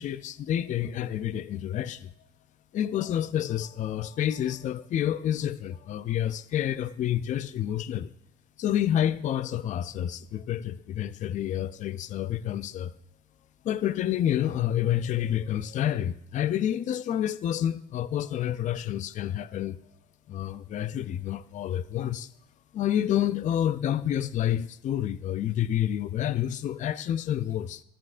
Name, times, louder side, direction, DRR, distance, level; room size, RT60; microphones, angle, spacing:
voice 1, 0.0-2.1 2.7-8.1 8.6-12.9 13.6-19.8 20.3-22.3 22.7-27.8, left 11 dB, 45° left, 0.4 m, -29 dB
13.5 x 10.0 x 2.5 m
cardioid pair, 110°, 17 cm